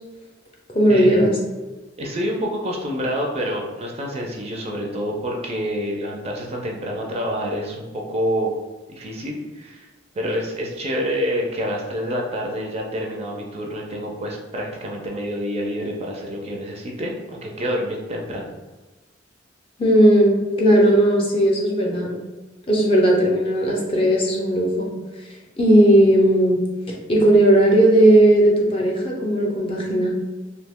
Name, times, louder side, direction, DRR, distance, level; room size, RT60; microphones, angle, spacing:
voice 1, 0.7-1.4 19.8-22.1 22.7-24.9 25.6-26.6 27.1-30.1, right 1 dB, 30° left, -2 dB, 0.5 m, -16 dB
voice 2, 2.0-8.5 8.9-9.9 10.2-18.6, equal, 30° right, 0 dB, 0.4 m, -27 dB
2.7 x 2.1 x 3.4 m, 1.2 s
head